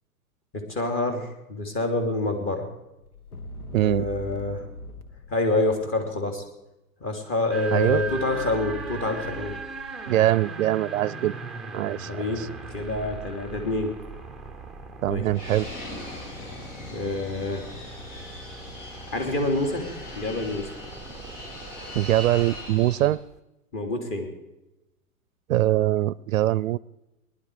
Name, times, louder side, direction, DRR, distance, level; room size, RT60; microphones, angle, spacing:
voice 1, 0.5-2.7 3.7-4.7 5.3-6.4 7.0-9.5 12.1-12.4 12.7-13.9 15.1-15.3 16.9-17.7 19.1-19.9 20.1-20.7 23.7-24.3, left 2 dB, 30° left, 4 dB, 3.3 m, -27 dB
sound 1, 3.0-6.3 7.5-10.7, left 2 dB, 85° left, 1.8 m, -42 dB
voice 2, 3.7-4.1 7.7-8.0 10.1-11.4 11.7-12.1 12.4-12.5 15.0-15.7 21.9-23.2 25.5-26.8, right 14 dB, 65° right, 21 dB, 0.6 m, -22 dB
sound 2, 7.5-23.4, right 4 dB, ahead, 0.7 m, -40 dB
Fixed-wing aircraft airplane, 15.3-23.2, left 1 dB, 60° left, 4.9 m, -40 dB
19.5 x 11.5 x 4.9 m, 0.94 s
hypercardioid pair, 125°, 44 cm